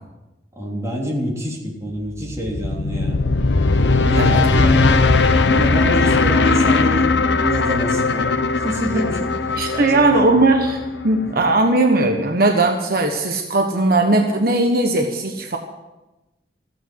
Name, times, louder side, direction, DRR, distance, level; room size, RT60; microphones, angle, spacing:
voice 1, 0.6-3.2 4.0-5.1 5.5-9.4 9.7-10.3 11.2-11.5, equal, 20° right, -3 dB, 3.6 m, -26 dB
sound 1, 1.8-2.8 3.6-9.6, right 1 dB, 75° right, 4.8 m, -41 dB
sound 2, 2.4-11.5, left 3 dB, 85° left, 0.8 m, -18 dB
voice 2, 9.6-15.6, right 2 dB, 60° right, 3 dB, 1.2 m, -18 dB
15.0 x 9.2 x 7.8 m, 1.0 s
head